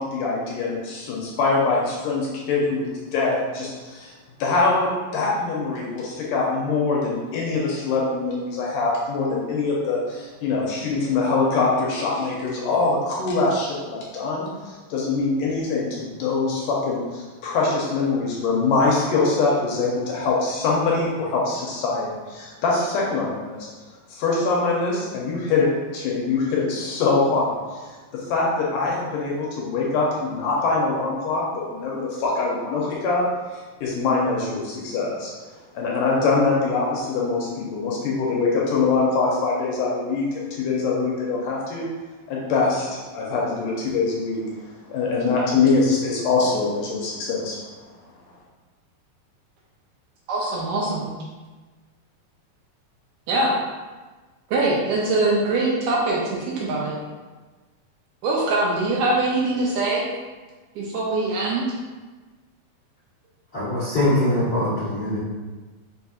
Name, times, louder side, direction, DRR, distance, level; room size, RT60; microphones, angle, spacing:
voice 1, 0.0-4.1 4.4-23.6 24.1-25.7 25.9-33.2 33.5-35.3 35.7-41.9 42.3-44.4 44.9-47.6, left 3 dB, 75° left, -3 dB, 2.1 m, -23 dB
voice 2, 50.3-51.1 53.3-53.6 54.5-57.0 58.2-60.0 60.8-61.8, right 2 dB, 80° right, -4 dB, 2.1 m, -23 dB
voice 3, 63.5-65.2, left 1 dB, 60° left, -12 dB, 1.1 m, -22 dB
5.5 x 4.0 x 2.4 m, 1.3 s
omnidirectional pair, 4.1 m